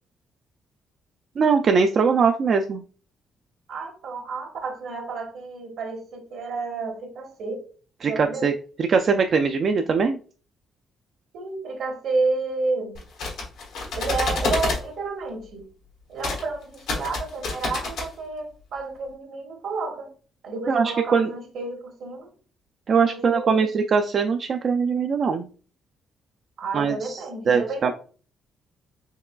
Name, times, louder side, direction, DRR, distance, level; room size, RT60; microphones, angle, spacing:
voice 1, 1.4-2.8 8.0-8.5 8.8-10.2 20.7-21.3 22.9-25.5 26.7-27.2 27.5-27.9, right 5 dB, 50° right, 0.3 m, -21 dB
voice 2, 3.7-7.6 8.1-8.5 11.3-13.0 14.0-15.7 16.1-20.1 20.4-22.3 23.1-23.5 26.6-27.9, right 3 dB, 75° right, 1.3 m, -30 dB
sound 1, 12.9-14.8 16.2-16.4 16.7-18.1, left 3 dB, 90° left, 1.4 m, -28 dB
4.6 x 3.0 x 2.3 m
cardioid pair, 90°, 0 cm